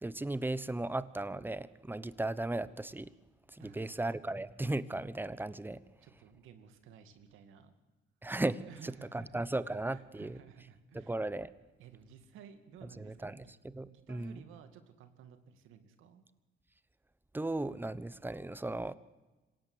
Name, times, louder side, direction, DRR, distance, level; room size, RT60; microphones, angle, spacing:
voice 1, 0.0-3.1 3.5-5.8 8.2-10.4 10.9-11.5 13.0-13.4 13.7-14.4 17.3-18.9, right 2 dB, 10° right, 16 dB, 1.1 m, -36 dB
voice 2, 3.6-4.1 6.0-7.7 8.7-9.4 9.9-11.2 11.8-13.5 13.8-16.2, right 8 dB, 90° right, 9 dB, 2.4 m, -55 dB
26.5 x 17.5 x 8.0 m, 1.2 s
cardioid pair, 90°, 20 cm